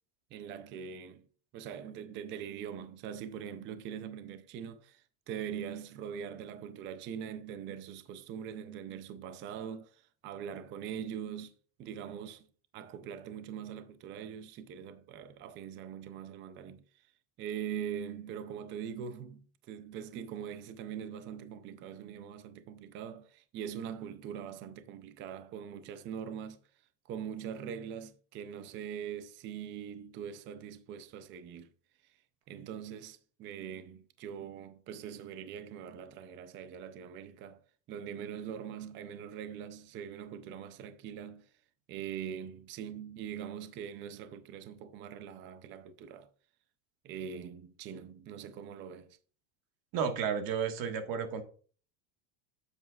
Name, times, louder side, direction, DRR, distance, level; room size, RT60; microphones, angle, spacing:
voice 1, 0.3-1.2 1.5-11.5 11.8-12.5 12.7-16.8 17.4-26.6 27.1-31.7 32.5-37.6 37.9-41.5 41.9-46.3 47.0-49.2, right 8 dB, 25° right, 0.4 m, -42 dB
voice 2, 49.9-51.4, right 7 dB, 45° right, 1.6 m, -32 dB
9.2 x 8.0 x 2.3 m
supercardioid pair, 155°, 49 cm